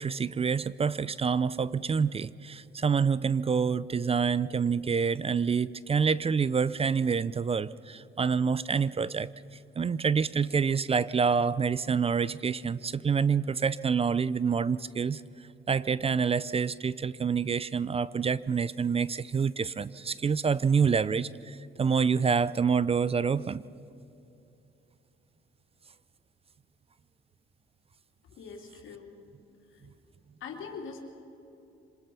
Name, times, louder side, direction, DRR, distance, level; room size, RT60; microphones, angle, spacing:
voice 1, 0.0-9.3 9.8-15.2 15.7-23.6, right 6 dB, 30° right, 19 dB, 0.5 m, -27 dB
voice 2, 28.4-29.1 30.4-31.0, left 5 dB, 80° left, 2 dB, 3.1 m, -42 dB
25.5 x 20.0 x 5.9 m, 2.8 s
cardioid pair, 90°, 20 cm